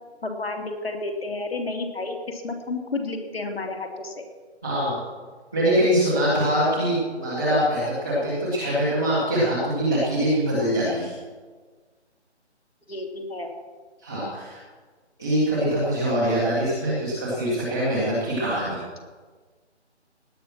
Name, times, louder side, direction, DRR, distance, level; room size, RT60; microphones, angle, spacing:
voice 1, 0.2-4.3 12.9-13.5, left 3 dB, 55° left, 3 dB, 3.0 m, -31 dB
voice 2, 4.6-5.0 5.5-11.1 14.0-14.6 15.2-18.8, equal, 5° right, -15 dB, 0.8 m, -23 dB
18.0 x 10.0 x 6.1 m, 1.4 s
figure-of-eight pair, 170°, 35 cm